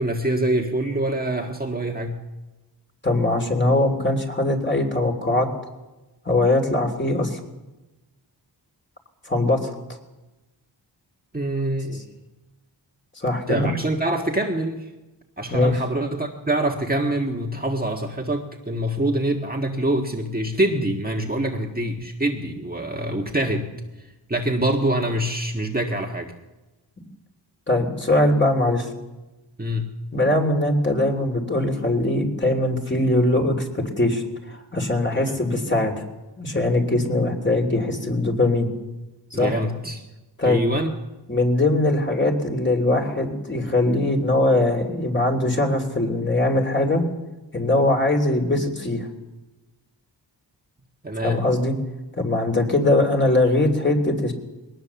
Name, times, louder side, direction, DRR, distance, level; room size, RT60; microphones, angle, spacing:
voice 1, 0.0-2.2 11.3-12.1 13.5-14.9 15.4-23.7 24.3-26.3 29.6-29.9 35.1-35.4 39.3-40.0 40.4-40.9 51.0-51.5, right 1 dB, 20° right, 1 dB, 1.6 m, -25 dB
voice 2, 3.0-5.5 6.2-7.4 9.3-9.7 13.2-13.7 15.5-15.7 27.7-28.9 30.1-35.9 36.4-38.7 39.3-39.5 40.4-40.6 41.3-47.0 47.5-49.1 51.2-51.7 52.1-54.3, left 2 dB, 25° left, 3 dB, 3.1 m, -21 dB
21.5 x 19.0 x 7.0 m, 1.1 s
wide cardioid pair, 120°, 45 cm